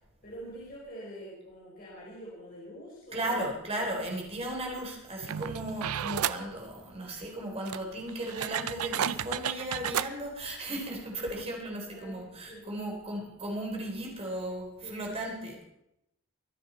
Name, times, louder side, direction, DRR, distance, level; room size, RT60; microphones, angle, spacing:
voice 1, 0.2-3.4 11.1-12.7 14.8-15.1, equal, 40° left, -7 dB, 5.1 m, -46 dB
voice 2, 3.1-15.6, right 1 dB, 30° right, 0 dB, 4.0 m, -36 dB
sound 1, 5.2-6.4 7.2-7.3 7.6-10.1 10.9-11.0 11.3-11.4, right 9 dB, 80° right, 0.5 m, -32 dB
24.0 x 9.2 x 4.4 m, 0.85 s
head